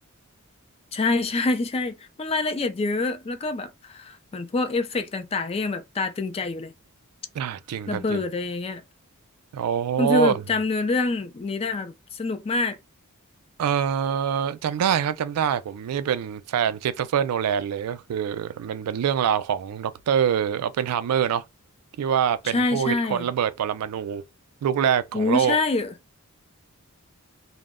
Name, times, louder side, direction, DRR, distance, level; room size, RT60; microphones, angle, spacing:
voice 1, 0.9-6.7 7.9-8.8 10.0-12.8 22.4-23.3 25.1-25.9, left 3 dB, 25° left, 0.3 m, -26 dB
voice 2, 7.3-8.2 9.5-10.4 13.6-21.4 22.0-24.2 24.6-25.6, right 8 dB, 80° right, 0.3 m, -25 dB
2.1 x 2.0 x 3.5 m
head